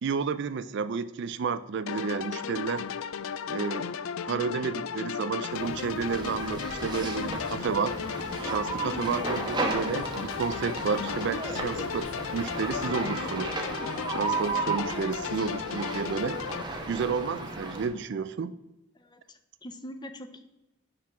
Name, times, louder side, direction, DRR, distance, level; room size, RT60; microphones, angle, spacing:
voice 1, 0.0-2.9 3.5-3.9 4.3-8.0 8.4-13.5 14.1-16.4 16.9-18.5, right 5 dB, 60° right, 14 dB, 0.4 m, -31 dB
sound 1, 1.9-16.6, left 7 dB, 90° left, 0.4 m, -35 dB
sound 2, 5.5-12.9, right 1 dB, 90° right, 1.8 m, -48 dB
sound 3, 6.1-17.9, right 3 dB, 20° right, 1.0 m, -35 dB
voice 2, 8.9-9.4 18.9-20.4, equal, 20° left, 9 dB, 0.6 m, -42 dB
5.8 x 4.8 x 5.7 m, 0.97 s
head